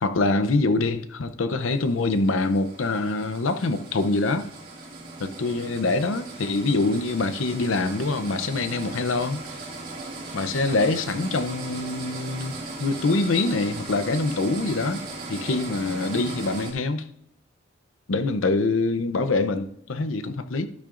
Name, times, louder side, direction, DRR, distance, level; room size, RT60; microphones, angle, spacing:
voice 1, 0.0-4.5 5.2-9.4 10.3-15.0 15.3-17.1 18.1-20.7, left 3 dB, 90° left, 0.7 m, -25 dB
sound 1, 1.6-16.7, right 2 dB, 45° right, 2.1 m, -38 dB
12.0 x 8.6 x 2.5 m
head